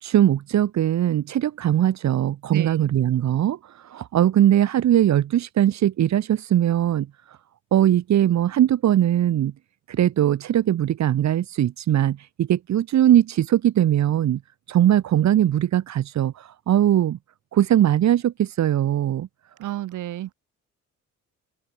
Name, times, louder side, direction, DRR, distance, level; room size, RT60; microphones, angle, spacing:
voice 1, 0.0-7.4 7.7-9.5 9.9-14.4 14.7-17.2 17.5-19.3, right 11 dB, 65° right, 1.6 m, -20 dB
voice 2, 2.5-2.9 19.6-20.3, right 14 dB, 80° right, 4.5 m, -31 dB
open air
cardioid pair, 90°, 30 cm